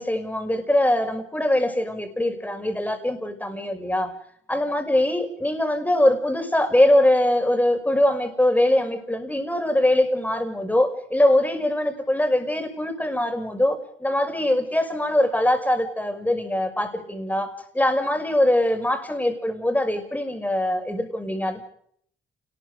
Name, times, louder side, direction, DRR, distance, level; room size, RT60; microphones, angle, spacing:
voice 1, 0.0-4.1 4.5-21.6, left 1 dB, 10° left, 6 dB, 5.8 m, -22 dB
29.0 x 20.0 x 5.1 m, 0.65 s
cardioid pair, 90°, 20 cm